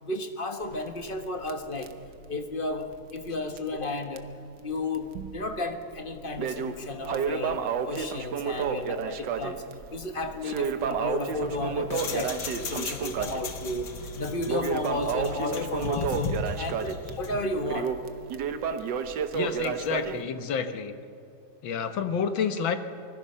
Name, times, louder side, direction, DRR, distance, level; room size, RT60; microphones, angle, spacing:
voice 1, 0.0-1.9 2.3-4.3 4.6-9.6 9.9-13.9 14.1-17.9, left 2 dB, 30° left, 6 dB, 1.4 m, -33 dB
Crackle, 0.6-3.3 3.6-3.7 4.2-4.3 4.9-5.6 5.9-20.2, right 7 dB, 70° right, 1.6 m, -31 dB
sound 1, 11.3-17.5, left 4 dB, 65° left, 2.0 m, -37 dB
voice 2, 19.3-20.9 21.6-22.8, left 6 dB, 80° left, 8 dB, 1.9 m, -29 dB
25.0 x 21.0 x 5.6 m, 2.5 s
omnidirectional pair, 2.1 m